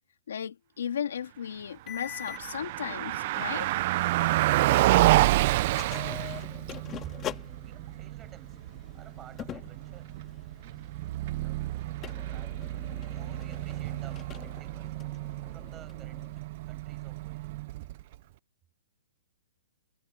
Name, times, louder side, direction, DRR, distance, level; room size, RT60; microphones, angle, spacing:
voice 1, 0.3-3.7, left 8 dB, 75° left, 2.5 m, -35 dB
sound 1, 1.9-4.9 5.2-16.4, left 11 dB, 15° left, 2.0 m, -45 dB
Car passing by, 2.0-18.2, right 17 dB, 35° right, 0.4 m, -29 dB
voice 2, 6.8-7.2 7.6-8.6 8.9-10.2 10.6-11.0 11.4-12.6 13.0-15.1 15.5-17.6, right 11 dB, 15° right, 7.2 m, -53 dB
hypercardioid pair, 170°, 0 cm